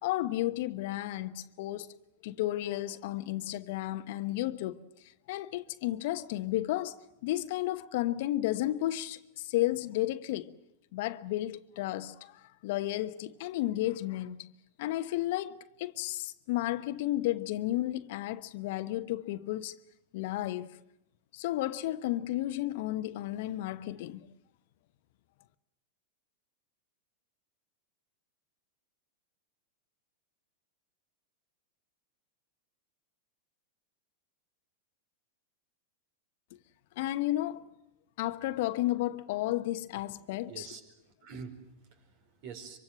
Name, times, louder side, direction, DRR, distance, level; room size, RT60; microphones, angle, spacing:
voice 1, 0.0-1.9 2.2-4.8 5.3-7.0 7.2-10.5 10.9-14.5 14.8-19.8 20.1-20.8 21.3-24.2 37.0-37.6 38.2-40.7, left 15 dB, 60° left, 1.0 m, -32 dB
voice 2, 40.5-42.8, right 5 dB, 55° right, 4.7 m, -47 dB
25.0 x 24.5 x 7.6 m
hypercardioid pair, 95°, 0 cm